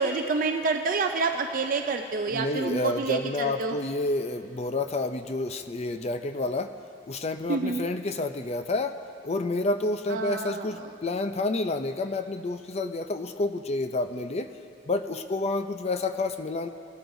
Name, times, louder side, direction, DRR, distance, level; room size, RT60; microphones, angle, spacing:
voice 1, 0.0-3.8 7.5-7.9 10.1-10.6, right 4 dB, 40° right, 5 dB, 0.4 m, -28 dB
voice 2, 2.3-6.7 7.1-8.9 9.2-14.5 14.9-16.7, left 2 dB, 30° left, 8 dB, 0.5 m, -29 dB
20.5 x 12.5 x 2.7 m, 2.6 s
head